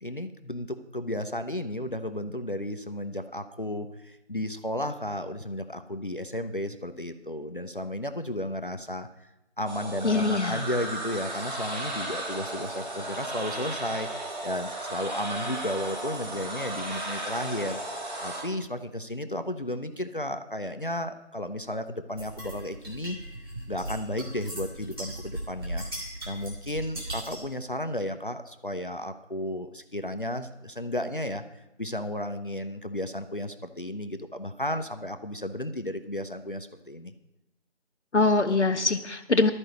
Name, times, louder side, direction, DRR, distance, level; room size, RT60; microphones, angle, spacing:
voice 1, 0.0-9.3 9.6-17.8 18.2-23.2 23.7-25.9 26.3-31.4 31.8-37.1, left 1 dB, 45° left, 8 dB, 0.6 m, -33 dB
sound 1, 9.7-18.4, right 1 dB, 35° right, 3.7 m, -35 dB
voice 2, 10.0-10.6 38.1-39.5, left 3 dB, 70° left, 5 dB, 0.9 m, -23 dB
sound 2, 22.2-27.5, right 1 dB, 20° right, 2.0 m, -38 dB
12.5 x 5.3 x 8.2 m, 0.95 s
figure-of-eight pair, 170°, 36 cm